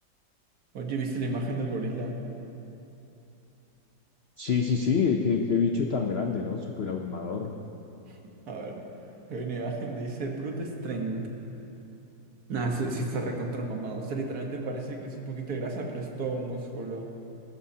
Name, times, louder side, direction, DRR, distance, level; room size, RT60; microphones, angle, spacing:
voice 1, 0.7-2.1 8.0-8.2 8.5-8.8 9.3-11.3 12.5-17.0, right 3 dB, 55° right, 1 dB, 1.7 m, -32 dB
voice 2, 4.4-7.5, left 5 dB, 85° left, 2 dB, 0.5 m, -26 dB
18.5 x 14.5 x 2.8 m, 2.9 s
omnidirectional pair, 2.0 m